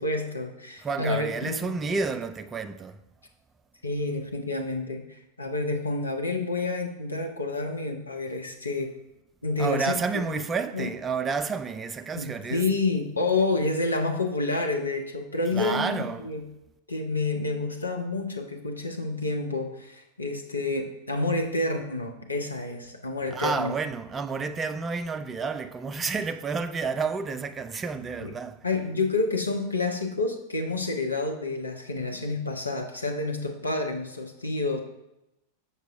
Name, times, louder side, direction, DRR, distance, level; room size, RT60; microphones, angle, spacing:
voice 1, 0.0-1.7 3.8-5.1 5.4-8.9 9.4-10.2 10.7-10.9 12.1-16.4 16.9-23.8 28.2-28.3 28.6-34.8, left 3 dB, 80° left, 0.7 m, -29 dB
voice 2, 0.8-3.0 9.6-12.8 15.5-16.3 23.3-28.7, right 5 dB, 20° right, 0.3 m, -30 dB
6.8 x 6.0 x 2.5 m
figure-of-eight pair, 90°, 0 cm